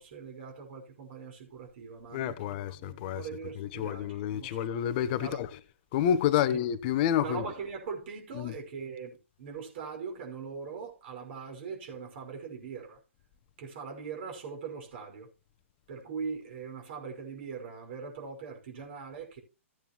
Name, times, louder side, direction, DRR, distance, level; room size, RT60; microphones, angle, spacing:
voice 1, 0.0-4.7 5.2-5.4 6.5-6.6 7.2-13.0 13.6-15.3 15.9-19.4, right 5 dB, 55° right, 5.7 m, -41 dB
voice 2, 2.1-3.3 3.6-5.5 5.9-7.4 8.3-8.5, left 10 dB, 40° left, 1.1 m, -29 dB
15.5 x 9.2 x 3.1 m
hypercardioid pair, 130°, 7 cm